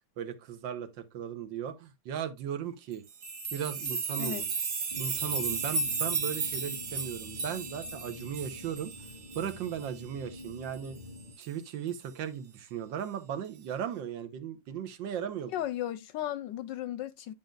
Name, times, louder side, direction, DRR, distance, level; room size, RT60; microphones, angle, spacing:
voice 1, 0.2-3.0 3.5-4.5 5.0-8.9 9.4-11.0 11.4-15.5, right 9 dB, 70° right, 1.6 m, -37 dB
sound 1, 3.1-9.9 10.4-10.5 10.7-10.9 11.4-11.5, right 4 dB, 50° right, 1.7 m, -34 dB
sound 2, 4.9-11.3, left 2 dB, 15° right, 1.2 m, -47 dB
voice 2, 15.5-17.3, left 12 dB, 75° left, 1.1 m, -35 dB
10.5 x 5.6 x 2.4 m
omnidirectional pair, 2.2 m